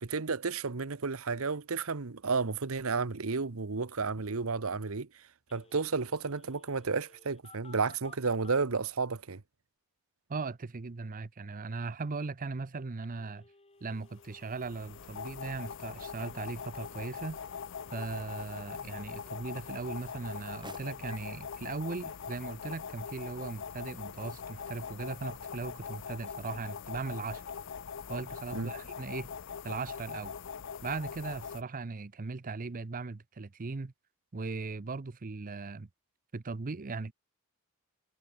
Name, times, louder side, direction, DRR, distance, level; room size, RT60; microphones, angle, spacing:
voice 1, 0.0-5.2 5.5-9.4 28.5-28.7, right 4 dB, 70° right, 1.0 m, -32 dB
Telephone, 5.5-8.6 13.0-21.2, left 3 dB, 30° left, 2.4 m, -59 dB
voice 2, 10.3-13.4 13.8-17.4 17.9-27.4 28.1-29.3 29.6-30.3 30.8-33.9 34.3-35.9 36.3-37.1, right 3 dB, 40° right, 0.6 m, -38 dB
sound 1, 14.2-31.6, left 6 dB, 65° left, 0.6 m, -42 dB
sound 2, 20.1-32.1, right 2 dB, 20° right, 2.9 m, -61 dB
head